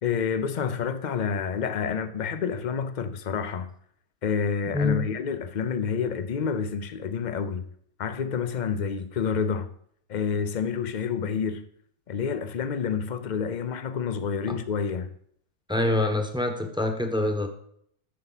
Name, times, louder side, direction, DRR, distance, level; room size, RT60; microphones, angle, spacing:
voice 1, 0.0-3.7 4.2-7.7 8.0-9.7 10.1-11.6 12.1-15.1, left 6 dB, 50° left, 0.6 m, -28 dB
voice 2, 4.7-5.1 14.5-14.6 15.7-17.5, left 2 dB, 5° right, 0.9 m, -25 dB
11.5 x 6.9 x 4.1 m
omnidirectional pair, 1.5 m